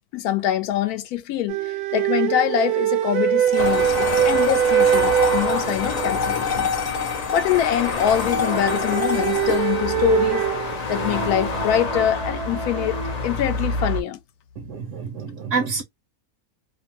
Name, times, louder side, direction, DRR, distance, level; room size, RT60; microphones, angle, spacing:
voice 1, 0.1-6.7 7.3-10.4 10.9-14.2, left 11 dB, 85° left, 1.1 m, -24 dB
sound 1, 1.5-6.3 8.2-13.3, right 11 dB, 85° right, 1.1 m, -23 dB
sound 2, 3.5-12.0, left 6 dB, 45° left, 0.7 m, -29 dB
sound 3, 3.6-14.0, left 3 dB, 70° left, 0.4 m, -29 dB
voice 2, 14.6-15.8, right 5 dB, 65° right, 0.8 m, -27 dB
2.7 x 2.0 x 2.8 m
omnidirectional pair, 1.6 m